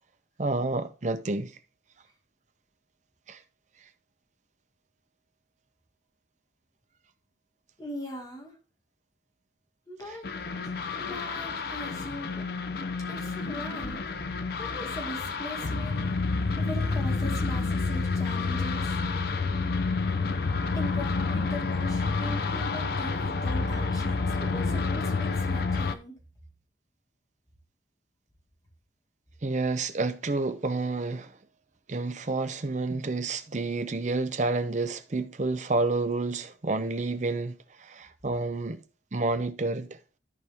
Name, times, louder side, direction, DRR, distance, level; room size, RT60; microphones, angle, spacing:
voice 1, 0.4-1.5 3.3-3.4 29.4-31.3 31.9-38.8 39.1-40.0, right 3 dB, 40° right, 0.6 m, -29 dB
voice 2, 7.8-8.5 9.9-12.5 13.1-14.2 14.6-16.1 16.6-19.0 20.7-26.2, equal, 20° left, 2.2 m, -40 dB
sound 1, 10.2-26.0, left 4 dB, 55° left, 0.6 m, -29 dB
13.5 x 4.6 x 3.5 m
head